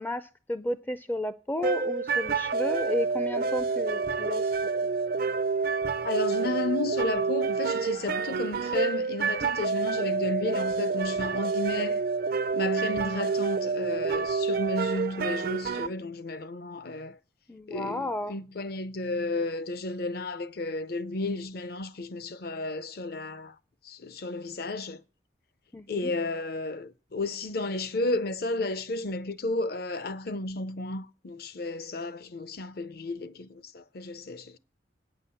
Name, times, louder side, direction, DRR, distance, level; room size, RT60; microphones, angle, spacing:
voice 1, 0.0-4.5 17.5-18.4 25.7-26.1, left 1 dB, 10° left, 0.4 m, -33 dB
sound 1, 1.6-15.9, right 4 dB, 50° right, 0.4 m, -28 dB
voice 2, 6.0-12.1 12.5-17.2 17.7-23.6 23.8-25.0 25.9-34.6, left 2 dB, 55° left, 0.7 m, -33 dB
9.2 x 5.9 x 7.0 m
head